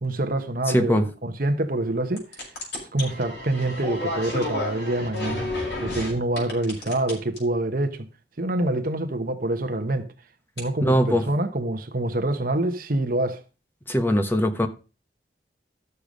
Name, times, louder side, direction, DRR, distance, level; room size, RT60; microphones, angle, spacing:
voice 1, 0.0-2.3 2.9-5.5 5.8-8.1 8.4-10.1 10.6-13.4, right 1 dB, 50° right, 1.0 m, -26 dB
voice 2, 0.7-1.1 10.8-11.2 13.9-14.7, equal, 10° left, 1.0 m, -21 dB
sound 1, 2.2-6.1 6.4-7.4 10.6-10.7, left 1 dB, 75° left, 5.4 m, -31 dB
12.5 x 6.9 x 5.1 m
head